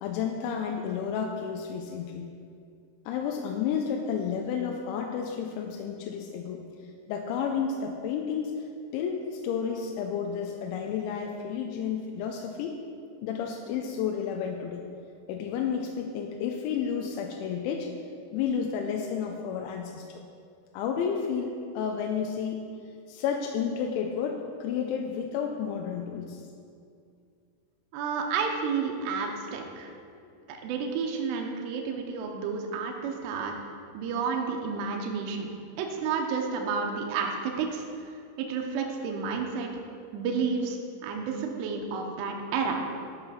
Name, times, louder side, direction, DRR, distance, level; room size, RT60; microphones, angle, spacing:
voice 1, 0.0-2.3 3.1-6.6 7.1-8.5 8.9-12.8 13.2-14.8 15.3-17.9 18.3-20.2 20.7-22.7 23.1-26.4, left 7 dB, 85° left, 3 dB, 2.7 m, -31 dB
voice 2, 27.9-29.9 30.5-33.5 33.9-35.5 35.8-39.7 40.1-42.8, right 5 dB, 80° right, 2 dB, 2.5 m, -31 dB
11.5 x 5.5 x 5.7 m, 2.4 s
omnidirectional pair, 5.8 m